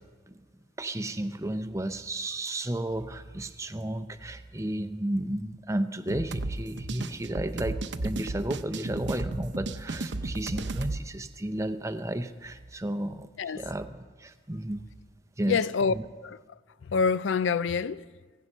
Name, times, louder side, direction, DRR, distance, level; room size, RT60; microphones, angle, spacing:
voice 1, 0.8-13.3 13.5-14.9 15.4-15.6 15.9-16.0, right 1 dB, 15° right, 0.6 m, -33 dB
sound 1, 6.1-11.0, right 2 dB, 65° right, 0.7 m, -34 dB
voice 2, 15.5-15.9 16.2-16.4 16.8-18.0, left 5 dB, 75° left, 0.4 m, -26 dB
16.5 x 16.0 x 5.5 m
head